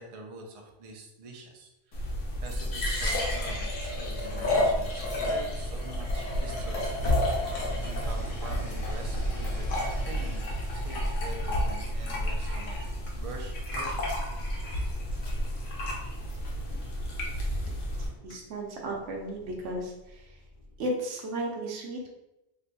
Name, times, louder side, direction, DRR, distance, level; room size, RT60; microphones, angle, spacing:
voice 1, 0.0-1.7 2.0-2.1 2.4-6.8 7.8-10.4 10.7-12.8 13.2-14.1, right 2 dB, 50° right, 1 dB, 0.4 m, -44 dB
sound 1, 1.9-18.1, left 1 dB, 85° left, 1.1 m, -31 dB
sound 2, 4.7-12.8 14.9-15.0, right 1 dB, 60° left, 1.1 m, -43 dB
sound 3, 4.8-10.7 11.1-20.9, equal, 45° left, 0.7 m, -41 dB
voice 2, 18.2-20.2 20.8-22.1, right 1 dB, 75° right, 0 dB, 1.0 m, -34 dB
3.1 x 2.2 x 3.9 m, 0.94 s
omnidirectional pair, 1.2 m